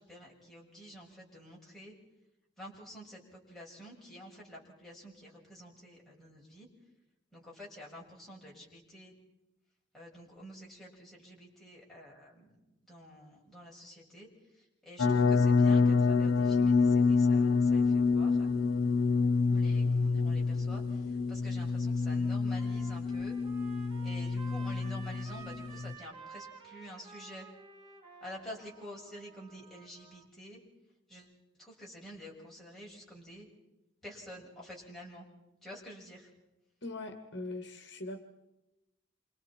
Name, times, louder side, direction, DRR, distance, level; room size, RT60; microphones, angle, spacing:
voice 1, 0.0-1.9 2.6-6.7 7.3-9.1 9.9-12.5 12.9-18.5 19.4-23.4 24.0-27.5 28.2-30.6 31.1-31.3 31.6-33.5 34.0-35.2 35.6-36.3, equal, ahead, -5 dB, 6.8 m, -49 dB
sound 1, 15.0-25.9, left 4 dB, 90° left, 0.8 m, -27 dB
Trumpet, 21.8-30.3, right 5 dB, 25° right, 3.3 m, -53 dB
voice 2, 36.8-38.2, left 2 dB, 60° left, 6 dB, 1.8 m, -41 dB
28.5 x 26.5 x 4.4 m, 0.96 s
head